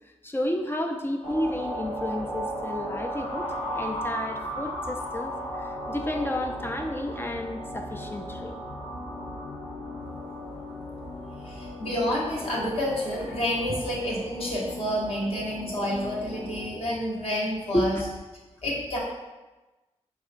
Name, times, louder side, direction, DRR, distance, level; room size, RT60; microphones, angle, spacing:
voice 1, 0.0-8.6 13.7-13.8 17.7-18.1, left 1 dB, 20° left, 4 dB, 0.4 m, -31 dB
sound 1, 1.2-16.6, equal, 90° left, 1.1 m, -36 dB
voice 2, 11.4-18.0 18.6-19.0, equal, 55° left, -5 dB, 1.3 m, -29 dB
4.8 x 4.0 x 2.6 m, 1.1 s
wide cardioid pair, 80°, 12 cm